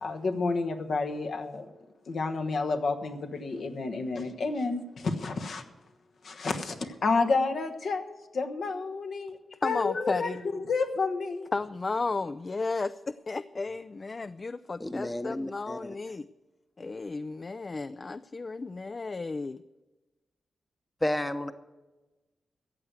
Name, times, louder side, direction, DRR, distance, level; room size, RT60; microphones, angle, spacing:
voice 1, 0.0-1.7 2.1-5.6 6.2-8.1 8.3-9.4 9.6-11.5, left 4 dB, 70° left, 5 dB, 1.2 m, -30 dB
voice 2, 9.5-10.4 11.5-16.3 16.8-19.6, left 3 dB, 40° left, 14 dB, 0.3 m, -33 dB
voice 3, 14.8-16.0 21.0-21.5, left 1 dB, 15° left, 10 dB, 0.8 m, -31 dB
14.5 x 8.1 x 7.9 m, 1.1 s
cardioid pair, 75°, 0 cm